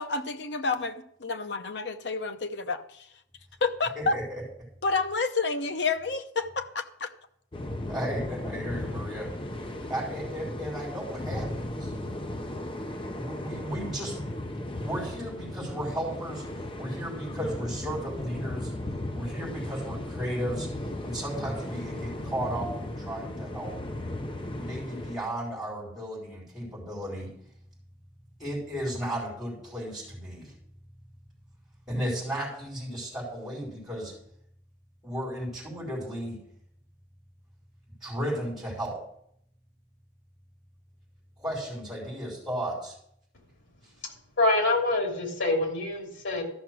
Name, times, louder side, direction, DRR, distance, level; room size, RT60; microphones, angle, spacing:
voice 1, 0.0-3.1 3.6-4.2 4.8-7.1, left 4 dB, 65° left, 8 dB, 0.8 m, -29 dB
voice 2, 3.9-4.4 7.9-9.3 9.9-11.9 13.1-14.2 14.8-18.7 19.1-20.7 21.0-23.8 24.6-27.3 28.4-30.5 31.9-34.1 35.0-36.4 38.0-39.0 41.4-42.9, right 1 dB, ahead, -5 dB, 4.7 m, -34 dB
sound 1, 7.5-25.2, left 1 dB, 25° left, 0.7 m, -36 dB
voice 3, 44.4-46.4, left 2 dB, 90° left, 1 dB, 3.0 m, -25 dB
13.5 x 6.0 x 6.1 m, 0.70 s
head